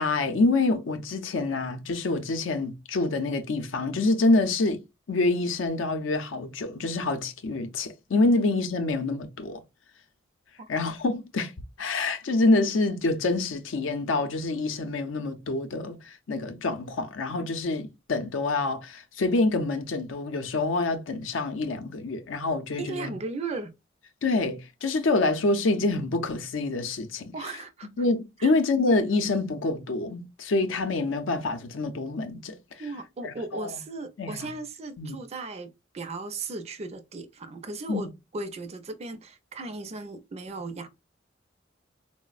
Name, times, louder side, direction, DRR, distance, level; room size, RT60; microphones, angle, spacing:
voice 1, 0.0-4.8 5.1-9.6 10.7-11.5 11.8-23.1 24.2-27.3 28.0-32.6 33.2-33.7 34.2-34.4 35.0-35.2 37.9-38.1, left 2 dB, 85° left, 0.5 m, -26 dB
voice 2, 22.8-23.7 27.3-27.9 28.4-28.5 32.8-40.9, right 3 dB, 35° right, 0.4 m, -36 dB
3.9 x 2.0 x 2.4 m
head